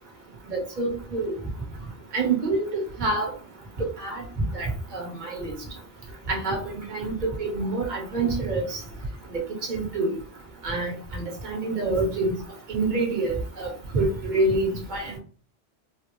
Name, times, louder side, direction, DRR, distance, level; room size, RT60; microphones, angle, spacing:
voice 1, 0.5-1.3 2.1-3.3 3.8-4.2 4.5-5.6 6.3-8.8 9.3-9.4 9.7-10.1 10.6-12.4 12.7-15.2, right 2 dB, 45° right, -1 dB, 1.1 m, -27 dB
3.7 x 2.0 x 3.0 m, 0.38 s
omnidirectional pair, 1.1 m